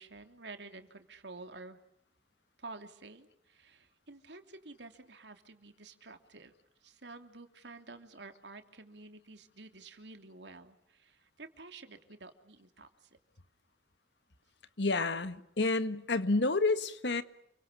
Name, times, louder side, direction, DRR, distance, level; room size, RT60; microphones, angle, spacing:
voice 1, 0.0-1.8 2.6-6.5 6.8-12.9, right 3 dB, 80° right, 3.0 m, -50 dB
voice 2, 14.8-17.2, left 3 dB, 85° left, 1.6 m, -29 dB
29.5 x 24.0 x 8.4 m
head